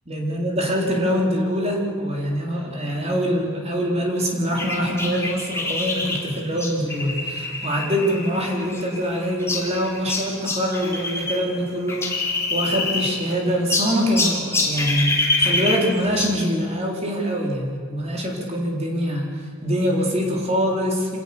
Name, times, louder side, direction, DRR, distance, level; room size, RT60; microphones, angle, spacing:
voice 1, 0.1-21.2, equal, 30° right, -1 dB, 4.0 m, -24 dB
sound 1, 4.6-11.4 11.7-13.3 13.7-16.4, left 3 dB, 10° left, 3.1 m, -26 dB
26.5 x 19.5 x 7.0 m, 2.1 s
head